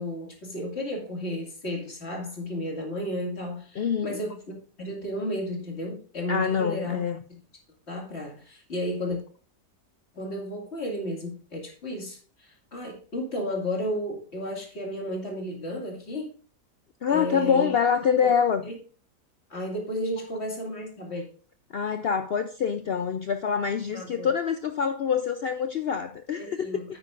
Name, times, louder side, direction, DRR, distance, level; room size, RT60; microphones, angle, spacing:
voice 1, 0.0-4.4 4.8-7.0 7.3-7.4 7.9-9.2 10.1-16.3 17.1-17.7 18.6-18.8 19.5-21.2 23.9-24.3 26.3-26.8, left 1 dB, 40° left, 2.5 m, -33 dB
voice 2, 3.8-4.2 6.3-7.2 17.0-18.7 21.7-26.7, left 7 dB, 85° left, 0.5 m, -25 dB
9.7 x 8.8 x 2.5 m
omnidirectional pair, 1.7 m